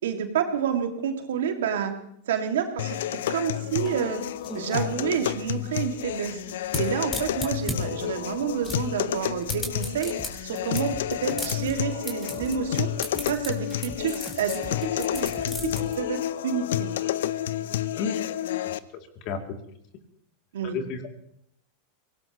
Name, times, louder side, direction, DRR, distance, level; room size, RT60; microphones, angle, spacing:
voice 1, 0.0-1.9 2.3-3.0 3.3-4.2 4.5-6.4 6.8-10.1 10.4-12.9 13.3-15.7 16.0-16.9 20.5-20.8, right 8 dB, 75° right, 5 dB, 2.1 m, -29 dB
sound 1, 2.8-18.8, left 12 dB, 70° left, 0.6 m, -30 dB
sound 2, 3.3-15.8, left 1 dB, 15° left, 4.2 m, -37 dB
sound 3, 10.2-16.1, right 4 dB, 20° right, 1.9 m, -44 dB
voice 2, 20.7-21.2, left 6 dB, 50° left, 4 dB, 2.7 m, -30 dB
24.0 x 18.5 x 3.0 m, 0.73 s
hypercardioid pair, 100°, 0 cm